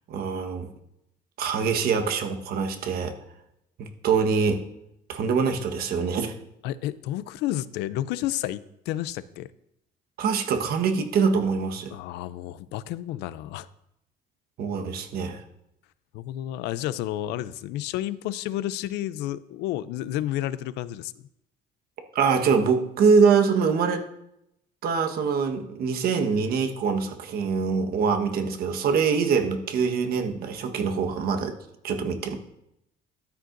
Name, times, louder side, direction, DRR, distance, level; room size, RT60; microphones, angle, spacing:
voice 1, 0.1-0.7 1.4-3.1 3.8-4.6 5.1-6.3 10.2-11.9 14.6-15.4 22.1-24.1 24.8-31.5 31.8-32.4, right 5 dB, 65° right, 5 dB, 1.3 m, -24 dB
voice 2, 6.6-9.5 11.9-13.7 16.1-21.1, left 13 dB, 90° left, 17 dB, 0.5 m, -31 dB
13.0 x 9.2 x 2.6 m, 0.81 s
cardioid pair, 110°, 17 cm